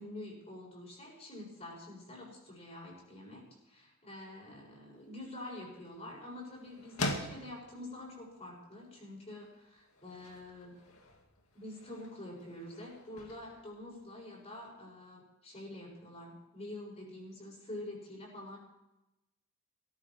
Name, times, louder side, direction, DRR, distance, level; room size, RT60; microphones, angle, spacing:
voice 1, 0.0-10.8 11.5-18.6, left 1 dB, 30° left, -2 dB, 6.7 m, -47 dB
sound 1, 4.9-14.7, left 2 dB, 75° left, 2.3 m, -45 dB
17.0 x 14.0 x 4.7 m, 0.93 s
head